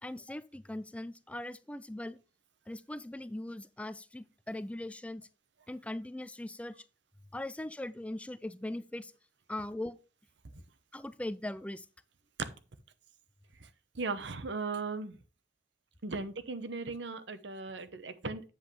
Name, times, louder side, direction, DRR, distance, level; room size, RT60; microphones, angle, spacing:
voice 1, 0.0-2.2 2.7-5.3 5.7-6.8 7.3-9.1 9.5-10.0 10.9-11.9, left 1 dB, 5° left, 0.3 m, -40 dB
voice 2, 14.0-15.2 16.0-18.4, right 3 dB, 90° right, 0.9 m, -37 dB
8.0 x 7.5 x 3.2 m
head